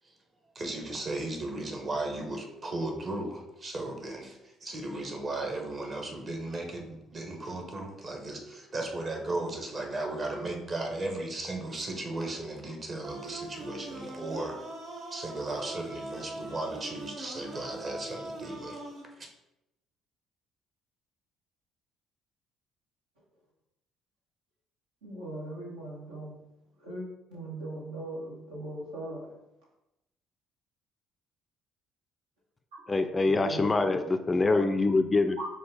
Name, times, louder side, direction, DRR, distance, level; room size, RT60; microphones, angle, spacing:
voice 1, 0.5-14.6 15.1-18.8 19.2-19.3, right 2 dB, 40° right, 3 dB, 1.1 m, -36 dB
sound 1, 13.0-19.0, right 2 dB, 65° right, 0.9 m, -42 dB
voice 2, 25.0-26.4 26.8-27.0 27.3-29.3 33.2-34.0 34.5-34.6 35.4-35.5, right 1 dB, 80° right, -4 dB, 1.2 m, -39 dB
voice 3, 32.9-35.4, left 3 dB, 25° left, 8 dB, 0.4 m, -25 dB
5.5 x 2.4 x 3.5 m, 0.91 s
hypercardioid pair, 50°, 0 cm